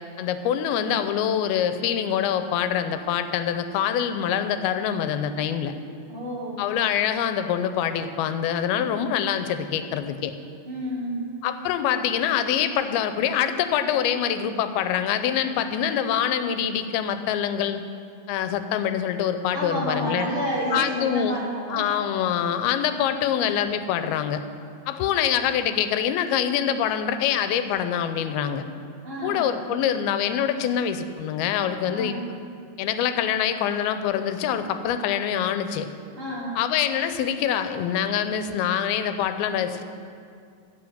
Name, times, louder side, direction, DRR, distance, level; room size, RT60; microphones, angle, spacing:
voice 1, 0.2-5.7 6.6-10.3 11.4-17.8 18.3-20.3 20.7-21.4 21.7-24.4 24.9-28.6 29.2-32.2 32.8-35.9 36.6-39.8, left 9 dB, 90° left, 10 dB, 2.5 m, -25 dB
voice 2, 6.1-6.7 10.6-11.2 19.5-22.1 29.0-29.4 31.9-32.2 36.2-36.6, equal, 40° right, -6 dB, 2.4 m, -30 dB
15.5 x 5.7 x 7.1 m, 2.3 s
omnidirectional pair, 4.3 m